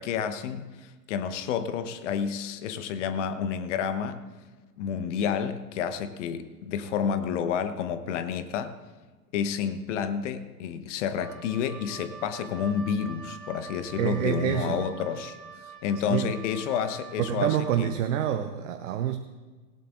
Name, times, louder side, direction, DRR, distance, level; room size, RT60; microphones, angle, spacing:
voice 1, 0.0-4.2 4.8-8.8 9.3-15.4 15.8-17.9, left 7 dB, 50° left, 10 dB, 1.1 m, -30 dB
Wind instrument woodwind instrument, 11.1-17.8, right 6 dB, 90° right, 1.3 m, -45 dB
voice 2, 14.0-14.9 16.1-16.3 17.2-19.2, right 10 dB, 55° right, 8 dB, 0.9 m, -27 dB
18.0 x 17.0 x 2.5 m, 1.3 s
figure-of-eight pair, 95°, 47 cm